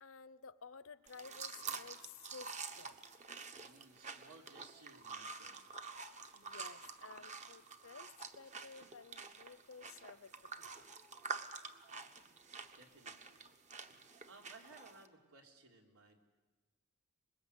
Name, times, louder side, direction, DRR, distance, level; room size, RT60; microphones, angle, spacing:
voice 1, 0.0-3.0 6.3-10.8, left 5 dB, 65° left, 16 dB, 0.7 m, -55 dB
sound 1, 1.1-15.1, right 5 dB, 35° right, 1.1 m, -48 dB
voice 2, 3.6-5.7 12.8-13.5 14.2-16.2, right 3 dB, 85° right, 1 dB, 3.5 m, -60 dB
25.5 x 21.0 x 8.2 m, 1.3 s
head